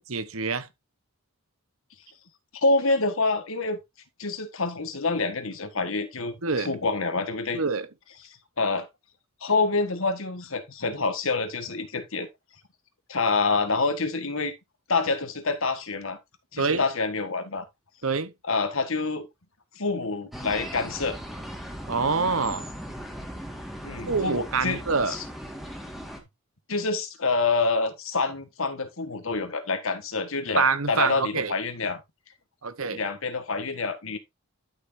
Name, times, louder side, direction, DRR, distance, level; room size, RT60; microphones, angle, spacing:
voice 1, 0.1-0.7 6.4-6.7 7.5-7.9 16.6-16.8 18.0-18.3 21.9-22.7 24.1-25.2 30.6-31.5 32.6-33.0, right 4 dB, 70° right, 1.1 m, -26 dB
voice 2, 2.5-3.8 4.2-7.6 8.6-8.9 9.4-12.3 13.1-14.5 14.9-16.2 16.5-17.6 18.5-19.3 19.7-21.2 23.8-24.8 25.1-25.2 26.7-32.0 32.9-34.2, left 3 dB, 65° left, 1.6 m, -27 dB
sound 1, 20.3-26.2, equal, ahead, 1.8 m, -38 dB
11.5 x 6.4 x 2.7 m
head